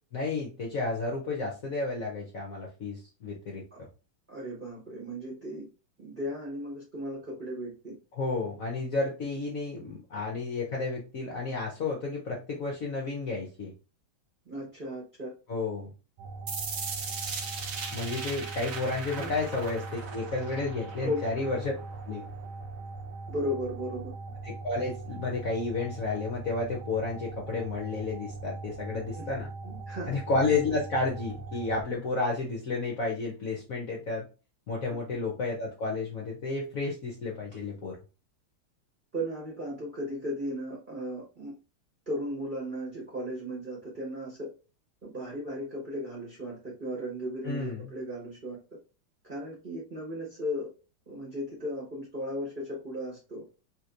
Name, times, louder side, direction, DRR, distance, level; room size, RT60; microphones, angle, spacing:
voice 1, 0.1-3.9 8.1-13.7 15.5-15.9 17.9-21.7 22.1-22.3 24.4-29.5 30.1-34.3 34.7-38.0 47.4-47.9, left 3 dB, 60° left, -1 dB, 0.9 m, -31 dB
voice 2, 4.3-5.7 6.0-7.9 14.5-15.3 19.2-19.3 21.0-21.3 23.3-24.1 29.2-29.3 29.6-30.1 34.9-35.0 39.1-41.5 42.1-44.5 45.0-48.6 49.3-50.7 51.1-53.4, equal, 35° right, -4 dB, 0.9 m, -36 dB
sound 1, 16.2-31.8, right 3 dB, 80° right, 1.5 m, -41 dB
sound 2, 16.5-22.5, right 5 dB, 65° right, 0.8 m, -39 dB
3.4 x 3.1 x 2.4 m, 0.32 s
omnidirectional pair, 2.2 m